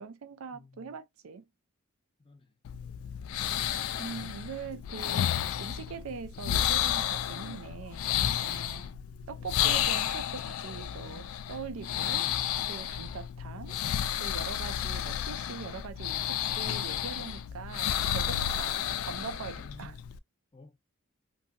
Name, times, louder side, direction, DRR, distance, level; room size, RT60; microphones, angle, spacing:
voice 1, 0.0-1.4 3.4-3.7 4.0-8.0 8.4-8.9 9.3-12.4 12.7-20.0, right 5 dB, 75° right, 0.4 m, -42 dB
voice 2, 0.5-1.0 2.2-2.6 8.7-9.0 19.6-20.0 20.5-20.8, left 3 dB, 25° left, 0.5 m, -53 dB
sound 1, 2.6-20.2, left 10 dB, 85° left, 0.3 m, -32 dB
2.7 x 2.7 x 2.5 m
head